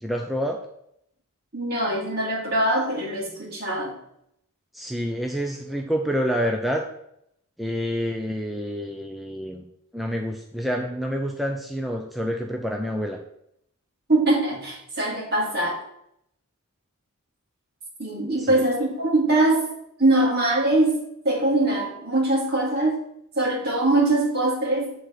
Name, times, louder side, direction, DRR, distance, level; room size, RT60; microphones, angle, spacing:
voice 1, 0.0-0.6 4.7-6.8 7.6-9.6 9.9-13.2 18.4-18.6, equal, ahead, 1 dB, 0.5 m, -28 dB
voice 2, 1.5-3.9 14.1-15.8 18.0-19.7 20.0-21.0 21.2-23.0 23.3-24.9, right 2 dB, 45° right, -3 dB, 2.6 m, -22 dB
8.0 x 3.9 x 6.5 m, 0.76 s
head